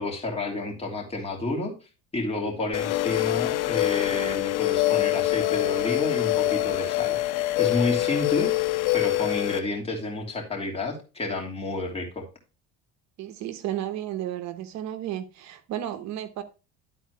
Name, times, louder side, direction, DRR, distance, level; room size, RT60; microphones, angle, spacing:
voice 1, 0.0-1.7 2.1-7.2 7.6-8.5 8.9-12.3, left 2 dB, 20° left, 2.9 m, -30 dB
sound 1, 2.7-9.6, left 17 dB, 85° left, 1.0 m, -25 dB
voice 2, 13.2-16.4, right 12 dB, 60° right, 0.9 m, -33 dB
11.5 x 4.2 x 4.7 m
cardioid pair, 130°, 31 cm